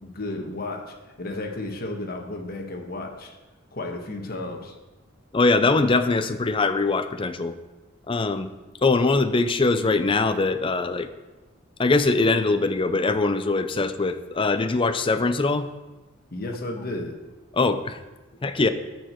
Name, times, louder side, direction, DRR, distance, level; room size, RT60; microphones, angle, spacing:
voice 1, 0.0-3.4 3.7-4.7 16.3-17.2, left 2 dB, 45° left, 2 dB, 1.3 m, -33 dB
voice 2, 5.3-7.5 8.1-8.5 8.8-11.1 11.8-15.7 17.5-18.0 18.4-18.7, left 3 dB, 25° left, 10 dB, 0.5 m, -22 dB
13.5 x 4.7 x 4.5 m, 1.1 s
head